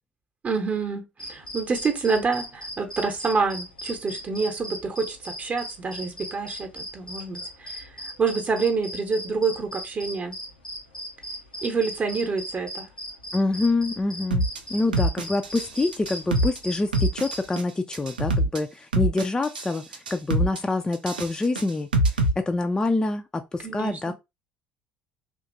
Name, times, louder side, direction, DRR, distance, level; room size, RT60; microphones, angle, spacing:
voice 1, 0.4-10.3 11.6-12.9 23.6-24.1, right 4 dB, 30° right, 0.8 m, -27 dB
sound 1, 1.2-17.6, equal, 90° left, 0.6 m, -38 dB
voice 2, 13.3-21.9 22.4-24.1, left 2 dB, 15° left, 0.3 m, -26 dB
sound 2, 14.3-14.6 14.9-15.7 15.9-16.6 16.9-17.6 17.9-18.6 18.9-19.7 19.9-20.6 20.9-22.3, right 1 dB, 85° right, 0.3 m, -24 dB
2.8 x 2.4 x 2.5 m
figure-of-eight pair, 55°, 5 cm